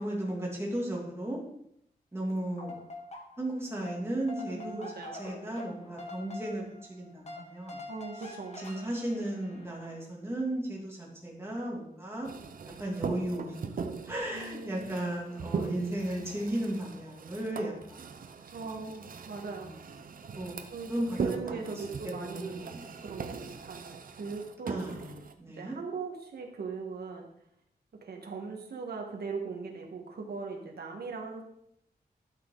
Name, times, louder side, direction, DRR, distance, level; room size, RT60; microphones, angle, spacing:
voice 1, 0.0-1.4 2.1-2.8 3.4-4.9 5.2-7.8 8.3-12.3 12.8-13.8 14.1-18.2 18.6-18.8 19.4-20.5 20.9-22.9 23.2-23.5 24.6-25.8, right 1 dB, 15° right, -3 dB, 2.6 m, -36 dB
sound 1, 2.4-3.6 3.8-10.0, left 2 dB, 40° left, 1.7 m, -45 dB
voice 2, 4.3-5.1 7.9-8.6 14.3-14.9 18.5-19.7 20.7-24.8 25.6-27.3 28.0-31.4, right 4 dB, 75° right, 2 dB, 1.7 m, -40 dB
sound 2, 12.2-25.3, right 5 dB, 60° right, 0.7 m, -40 dB
12.5 x 6.1 x 3.9 m, 0.74 s
wide cardioid pair, 140°, 16 cm